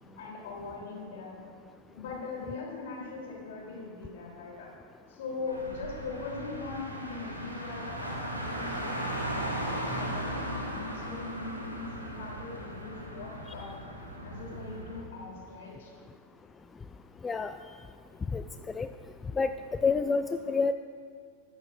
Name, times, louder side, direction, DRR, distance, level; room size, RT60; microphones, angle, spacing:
voice 1, 0.2-1.3 2.0-4.7 5.1-13.7 14.2-15.9, left 3 dB, 55° left, -2 dB, 3.4 m, -41 dB
Car, 5.5-15.0, equal, 85° right, 1.8 m, -37 dB
voice 2, 17.2-17.5 18.3-18.4 18.8-18.9 19.4-19.5 19.8-20.7, left 4 dB, 15° left, 9 dB, 0.3 m, -27 dB
21.5 x 11.0 x 2.6 m, 2.2 s
figure-of-eight pair, 90°, 0 cm